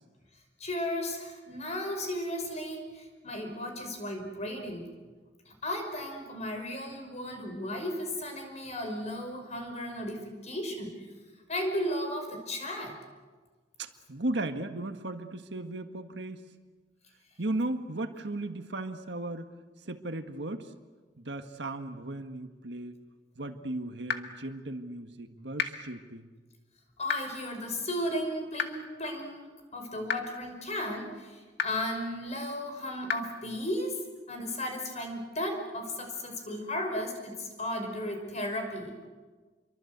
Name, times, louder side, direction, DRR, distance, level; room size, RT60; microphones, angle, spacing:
voice 1, 0.6-4.9 5.5-11.1 11.5-13.0 27.0-34.0 34.3-38.9, left 1 dB, 40° left, 4 dB, 5.6 m, -35 dB
voice 2, 13.8-16.5 17.4-19.5 19.8-20.7 21.2-23.0 23.4-26.4, right 2 dB, 70° right, 7 dB, 1.8 m, -36 dB
sound 1, 24.1-24.2 25.6-25.7 27.1-27.2 28.6-28.7 30.1-30.2 31.6-31.7 33.1-33.2, left 7 dB, 65° left, 2.0 m, -28 dB
28.5 x 23.5 x 8.2 m, 1.4 s
head